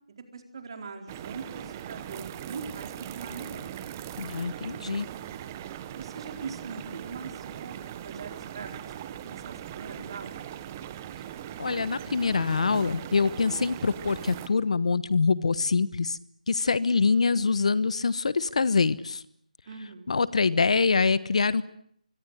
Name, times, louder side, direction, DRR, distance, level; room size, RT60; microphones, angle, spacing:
voice 1, 0.1-3.7 5.9-8.8 9.2-10.4 19.7-20.2, right 4 dB, 35° right, 4 dB, 4.3 m, -41 dB
sound 1, 1.1-14.5, right 10 dB, 20° right, 1.1 m, -40 dB
voice 2, 4.2-5.1 11.6-16.2 16.5-19.2 20.1-21.6, left 4 dB, 50° left, 16 dB, 1.1 m, -25 dB
25.0 x 24.5 x 8.0 m, 0.68 s
figure-of-eight pair, 165°, 4 cm